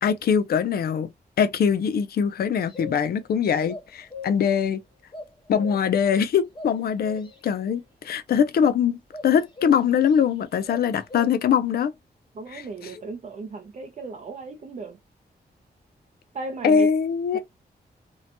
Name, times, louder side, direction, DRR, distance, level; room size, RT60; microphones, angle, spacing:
voice 1, 0.0-1.1 1.4-4.8 5.5-9.0 9.2-11.9 12.5-13.0 16.6-17.4, left 7 dB, 70° left, 0.4 m, -22 dB
sound 1, 2.7-3.3 3.7-4.6 5.1-6.1 6.6-7.5 9.1-10.2 10.7-11.6, left 3 dB, 30° left, 1.0 m, -39 dB
voice 2, 12.4-15.0 16.3-16.9 17.3-17.4, right 3 dB, 45° right, 0.4 m, -36 dB
2.7 x 2.1 x 2.6 m
wide cardioid pair, 120°, 17 cm